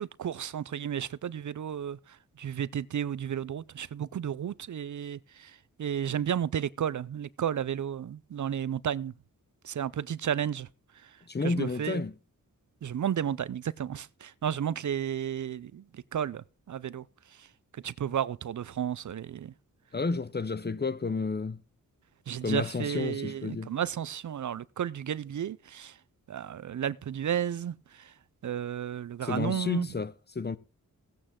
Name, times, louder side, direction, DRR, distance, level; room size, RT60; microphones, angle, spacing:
voice 1, 0.0-9.1 9.6-10.7 11.0-11.2 11.4-12.0 12.8-17.0 17.3-17.5 17.7-19.5 22.3-26.0 26.3-28.1 28.4-29.9, right 9 dB, 60° right, 0.5 m, -33 dB
voice 2, 11.3-12.1 19.9-21.6 22.4-23.7 29.2-30.6, left 4 dB, 30° left, 0.9 m, -31 dB
16.0 x 8.8 x 3.7 m
wide cardioid pair, 90°, 34 cm